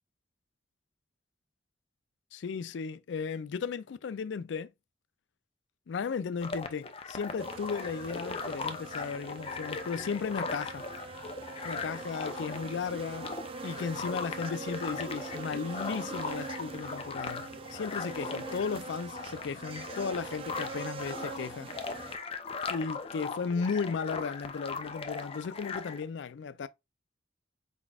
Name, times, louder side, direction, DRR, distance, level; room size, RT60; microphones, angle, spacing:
voice 1, 2.3-4.7 5.9-10.9 11.6-13.3 13.6-21.7 22.7-26.7, left 5 dB, 85° left, 0.4 m, -35 dB
sound 1, 6.4-26.0, left 4 dB, 30° left, 0.5 m, -39 dB
sound 2, 7.4-22.2, right 4 dB, 30° right, 0.3 m, -43 dB
4.5 x 4.0 x 2.3 m
head